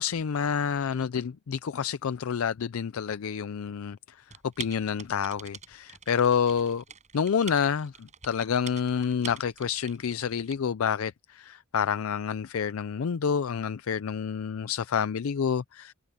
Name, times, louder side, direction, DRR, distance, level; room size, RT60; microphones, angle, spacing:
voice 1, 0.0-4.0 4.6-6.8 7.1-15.9, left 7 dB, 85° left, 0.4 m, -28 dB
Typing, 4.3-10.6, right 7 dB, 35° right, 7.2 m, -45 dB
head